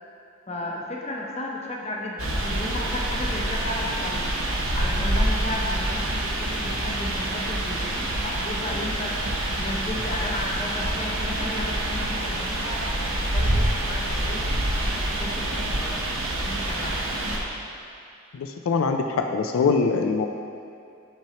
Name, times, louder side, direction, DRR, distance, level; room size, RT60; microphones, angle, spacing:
voice 1, 0.5-4.3 4.7-9.1 9.6-12.8 13.3-14.4 15.2-17.1, left 1 dB, 30° left, -2 dB, 0.7 m, -34 dB
sound 1, 2.2-17.4, right 1 dB, 75° right, 0.8 m, -26 dB
voice 2, 18.3-20.3, left 4 dB, 75° left, 5 dB, 0.4 m, -23 dB
6.8 x 5.9 x 2.9 m, 2.5 s
head